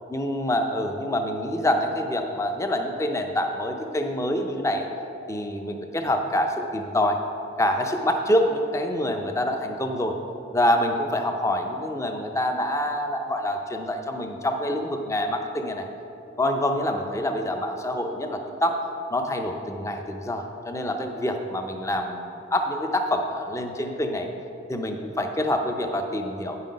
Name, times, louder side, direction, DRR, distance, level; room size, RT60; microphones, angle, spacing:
voice 1, 0.1-4.9 5.3-7.2 7.6-10.1 10.5-15.9 16.4-18.8 19.1-24.3 24.7-26.6, left 1 dB, 15° left, 4 dB, 0.6 m, -26 dB
9.2 x 5.7 x 5.2 m, 2.7 s
head